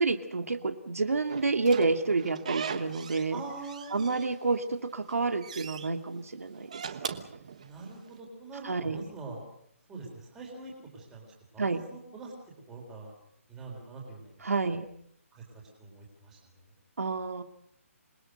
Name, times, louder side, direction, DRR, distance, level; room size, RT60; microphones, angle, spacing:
voice 1, 0.0-3.4 3.9-6.9 8.6-9.1 11.6-11.8 14.4-14.9 17.0-17.4, right 3 dB, 80° right, 7 dB, 2.5 m, -29 dB
Slam / Squeak, 1.3-3.3 3.6-4.6 5.0-5.9 6.5-8.1, right 7 dB, 30° right, 1.2 m, -40 dB
voice 2, 3.3-4.1 7.6-9.4 9.9-11.3 11.5-12.3 12.7-13.1 13.5-14.4 15.3-16.4, right 3 dB, 5° right, -1 dB, 4.0 m, -44 dB
27.0 x 20.5 x 6.6 m, 0.69 s
hypercardioid pair, 180°, 8 cm